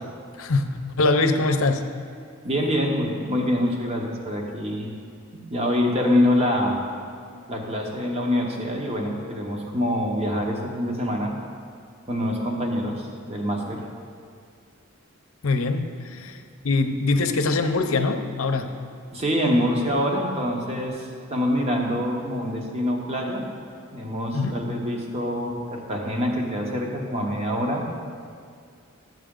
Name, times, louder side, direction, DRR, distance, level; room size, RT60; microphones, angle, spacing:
voice 1, 1.0-1.8 15.4-16.4 16.6-18.7 24.3-24.6, left 3 dB, 75° left, 7 dB, 0.6 m, -23 dB
voice 2, 2.4-4.9 5.3-6.8 7.5-11.3 12.1-13.9 16.2-16.3 19.1-23.5 23.9-27.9, equal, 30° right, 0 dB, 1.1 m, -25 dB
12.5 x 7.5 x 3.8 m, 2.2 s
head